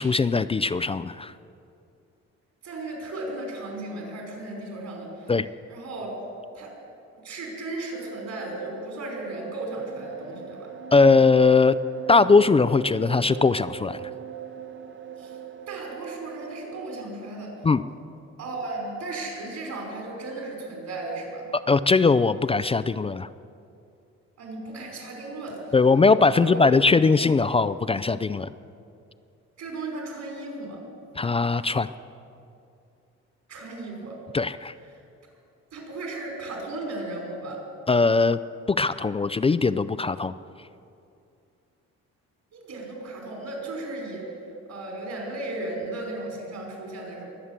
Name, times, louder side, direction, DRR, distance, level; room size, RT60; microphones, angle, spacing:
voice 1, 0.0-1.3 5.3-5.5 10.9-11.8 12.1-14.0 17.6-17.8 21.7-23.3 25.7-28.5 31.2-31.9 34.3-34.7 37.9-38.4 38.7-40.3, left 4 dB, 20° left, 14 dB, 0.3 m, -20 dB
voice 2, 2.6-5.3 5.7-6.2 6.5-6.7 7.1-10.7 15.2-15.4 15.7-17.5 18.4-21.5 24.4-25.6 26.3-26.6 27.1-27.2 29.6-30.8 33.5-34.2 35.7-37.6 42.5-44.4 44.7-47.3, right 2 dB, 65° right, -1 dB, 5.2 m, -35 dB
sound 1, 7.9-16.8, right 8 dB, 40° right, 0.9 m, -41 dB
22.5 x 8.2 x 7.4 m, 2.5 s
cardioid pair, 90°, 30 cm